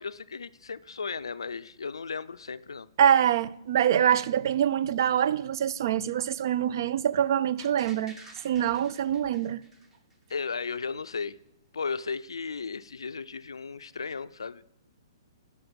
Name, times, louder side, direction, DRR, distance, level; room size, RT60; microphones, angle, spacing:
voice 1, 0.0-2.9 10.3-11.4 11.7-14.6, left 5 dB, 85° left, 0.3 m, -35 dB
voice 2, 3.0-8.2 8.4-9.6, right 9 dB, 55° right, 0.3 m, -25 dB
sound 1, 7.6-10.5 10.9-11.0, right 1 dB, 15° right, 1.0 m, -51 dB
7.1 x 6.3 x 5.2 m
hypercardioid pair, 135°, 3 cm